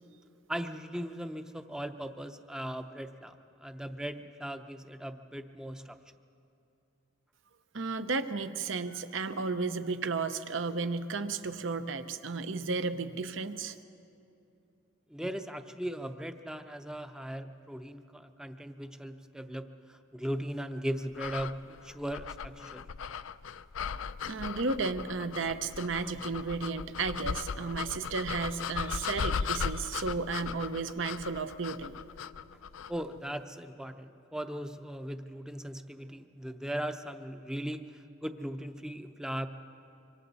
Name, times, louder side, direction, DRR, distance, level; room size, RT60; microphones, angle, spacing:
voice 1, 0.5-3.3 3.6-6.0 15.1-22.8 32.9-39.5, equal, 5° right, 8 dB, 0.6 m, -38 dB
voice 2, 7.7-13.8 24.2-32.0, right 4 dB, 70° right, 10 dB, 0.8 m, -33 dB
sound 1, 21.1-33.0, left 6 dB, 80° left, 0.5 m, -37 dB
26.0 x 24.5 x 4.1 m, 2.7 s
head